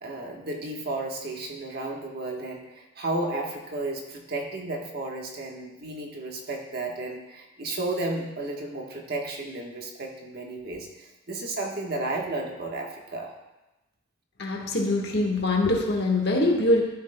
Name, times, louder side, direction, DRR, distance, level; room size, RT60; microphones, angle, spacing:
voice 1, 0.0-13.3, right 2 dB, 50° right, 1 dB, 1.2 m, -33 dB
voice 2, 14.4-16.8, left 2 dB, 55° left, 1 dB, 1.4 m, -23 dB
13.0 x 7.8 x 2.2 m, 1.0 s
head